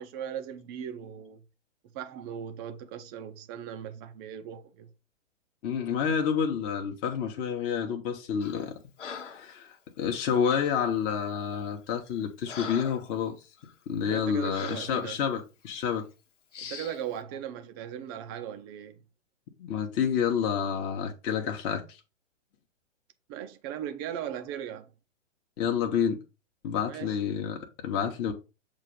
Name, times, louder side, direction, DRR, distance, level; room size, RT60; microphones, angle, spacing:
voice 1, 0.0-1.4 1.9-4.9 14.1-15.2 16.6-18.9 23.3-24.9 26.9-27.2, right 9 dB, 20° right, 0.4 m, -38 dB
voice 2, 5.6-8.8 9.2-13.4 13.9-16.1 19.6-22.0 25.6-26.2 26.6-28.3, left 7 dB, 30° left, 0.9 m, -29 dB
Breathing, 8.4-8.7 9.0-9.5 10.5-10.8 11.5-11.7 12.1-13.1 13.6-13.7 14.5-14.9 15.7-15.9 16.5-17.0, left 6 dB, 75° left, 1.1 m, -42 dB
7.2 x 2.5 x 5.3 m
hypercardioid pair, 125°, 37 cm